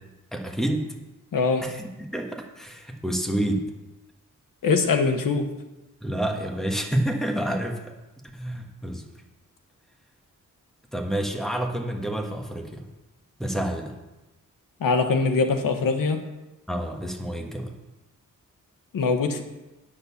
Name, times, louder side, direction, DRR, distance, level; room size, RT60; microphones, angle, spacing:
voice 1, 0.3-0.9 1.6-3.6 6.0-7.8 8.3-9.0 10.9-12.9 13.4-13.9 16.7-17.7, right 1 dB, ahead, 3 dB, 1.4 m, -28 dB
voice 2, 1.3-1.7 4.6-5.5 14.8-16.2 18.9-19.4, left 4 dB, 85° left, 6 dB, 1.3 m, -22 dB
9.4 x 6.5 x 7.1 m, 1.0 s
wide cardioid pair, 115°, 32 cm